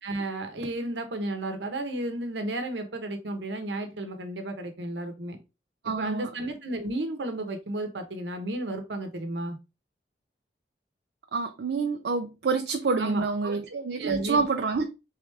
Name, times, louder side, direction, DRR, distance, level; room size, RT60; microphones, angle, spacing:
voice 1, 0.0-5.4 5.8-9.6 13.0-14.4, right 1 dB, 80° right, 0.9 m, -33 dB
voice 2, 5.8-6.3 11.3-14.9, right 4 dB, 65° right, 0.4 m, -27 dB
3.6 x 3.4 x 3.2 m
head